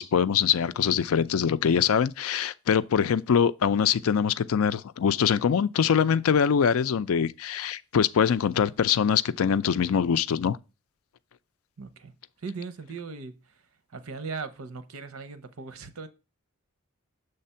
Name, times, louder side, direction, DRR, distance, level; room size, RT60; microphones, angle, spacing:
voice 1, 0.0-10.6, left 7 dB, 80° left, 0.4 m, -23 dB
voice 2, 11.8-12.1 12.4-13.3 13.9-16.1, right 4 dB, 90° right, 0.8 m, -38 dB
6.6 x 3.4 x 5.5 m
head